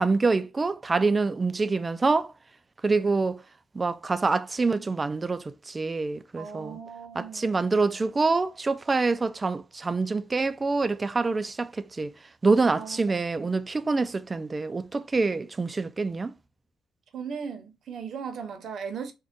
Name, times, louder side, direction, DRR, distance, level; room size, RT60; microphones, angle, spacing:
voice 1, 0.0-2.3 2.8-3.4 3.7-6.8 7.2-12.1 12.4-16.3, right 3 dB, 20° right, 0.3 m, -26 dB
voice 2, 6.4-7.6 12.7-13.0 13.4-13.5 17.1-19.1, right 6 dB, 60° right, 0.7 m, -37 dB
3.7 x 2.2 x 3.5 m
cardioid pair, 130°, 0 cm